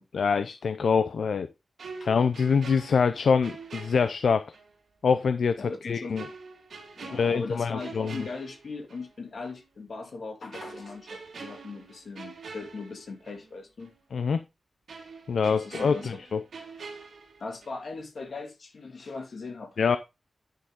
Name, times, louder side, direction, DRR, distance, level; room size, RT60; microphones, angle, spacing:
voice 1, 0.1-1.5 2.0-4.4 5.0-6.2 7.1-8.2 14.1-14.4 15.3-16.4 19.8-20.0, left 5 dB, 75° left, 0.5 m, -25 dB
sound 1, 1.8-4.7 5.1-5.2 6.2-9.1 9.4-9.6 10.5-13.5 13.8-13.9 14.9-17.9 18.2-18.4, right 4 dB, 75° right, 2.4 m, -45 dB
voice 2, 5.6-6.2 7.0-13.9 15.5-16.2 17.4-20.0, left 3 dB, 60° left, 2.6 m, -39 dB
10.5 x 6.4 x 3.7 m
wide cardioid pair, 180°, 0 cm